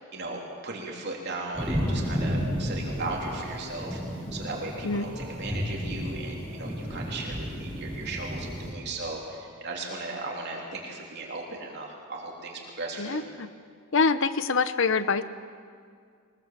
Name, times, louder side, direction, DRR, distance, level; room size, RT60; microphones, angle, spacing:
voice 1, 0.1-4.0 4.3-13.2, right 2 dB, 50° right, -2 dB, 3.4 m, -36 dB
sound 1, 1.5-8.7, equal, 5° left, 6.4 m, -32 dB
voice 2, 13.0-13.5 13.9-15.2, left 4 dB, 55° left, 12 dB, 0.9 m, -25 dB
23.0 x 21.0 x 7.5 m, 2.1 s
head